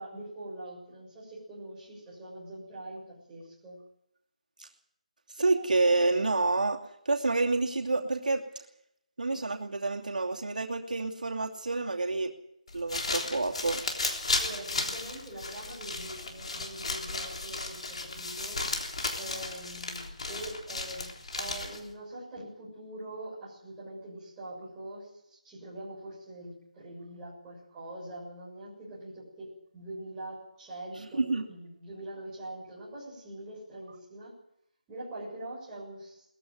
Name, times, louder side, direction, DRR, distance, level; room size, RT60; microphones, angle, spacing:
voice 1, 0.0-3.8 14.4-18.6 19.2-31.2 31.5-34.3 34.9-36.2, right 1 dB, 10° right, -7 dB, 7.0 m, -43 dB
voice 2, 5.3-8.4 9.2-12.3 12.7-13.8 30.9-31.5, right 3 dB, 90° right, 2 dB, 2.8 m, -28 dB
sound 1, 12.7-21.9, left 3 dB, 50° left, 3.6 m, -34 dB
21.0 x 14.5 x 9.4 m, 0.76 s
figure-of-eight pair, 175°, 4 cm